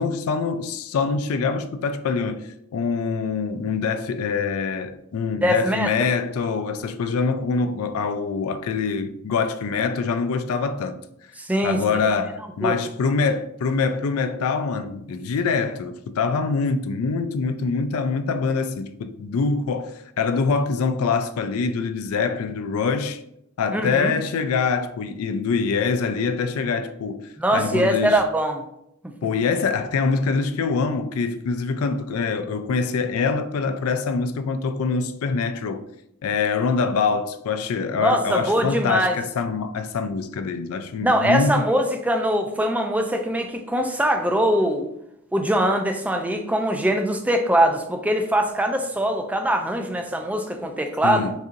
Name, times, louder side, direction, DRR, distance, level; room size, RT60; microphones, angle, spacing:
voice 1, 0.0-11.0 11.6-23.2 23.6-28.2 29.2-35.8 36.2-41.6 51.0-51.3, left 5 dB, 75° left, 0.4 m, -24 dB
voice 2, 5.4-5.9 11.4-12.0 12.6-12.8 23.7-24.1 27.4-28.6 37.9-39.1 41.0-44.8 45.3-51.3, right 1 dB, 5° right, 0.4 m, -22 dB
6.4 x 2.7 x 2.5 m
head